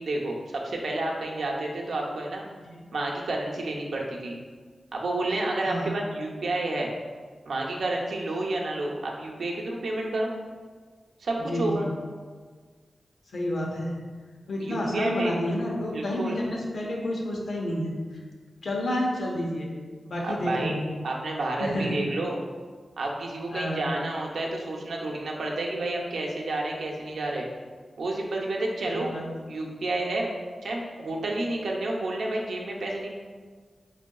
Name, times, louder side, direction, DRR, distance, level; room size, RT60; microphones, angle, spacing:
voice 1, 0.0-2.5 2.9-4.4 4.9-6.9 7.5-10.3 11.2-11.9 14.6-15.4 15.9-16.4 20.2-20.8 21.0-22.4 23.0-27.5 28.0-29.1 29.5-30.3 30.6-33.1, right 2 dB, 85° right, -1 dB, 0.7 m, -30 dB
voice 2, 5.6-5.9 11.5-11.9 13.3-14.0 14.5-18.2 18.6-19.7 20.0-20.9 21.6-22.0 23.5-23.9 28.9-29.2, left 1 dB, 65° left, -2 dB, 0.9 m, -30 dB
6.3 x 3.3 x 2.3 m, 1.5 s
wide cardioid pair, 135°, 0 cm